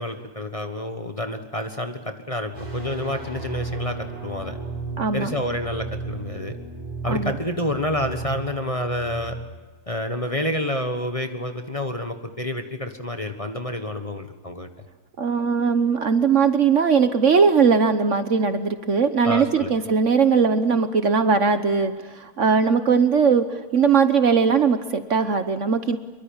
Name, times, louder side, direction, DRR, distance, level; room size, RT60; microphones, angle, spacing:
voice 1, 0.0-4.6 5.1-6.5 7.0-9.4 9.9-14.7 19.2-19.8, left 1 dB, 25° left, 6 dB, 1.3 m, -29 dB
sound 1, 2.5-9.4, right 3 dB, 15° right, 5.7 m, -34 dB
voice 2, 5.0-5.3 7.1-7.3 15.2-26.0, right 5 dB, 55° right, 10 dB, 1.3 m, -20 dB
24.0 x 23.0 x 8.8 m, 1.3 s
omnidirectional pair, 1.7 m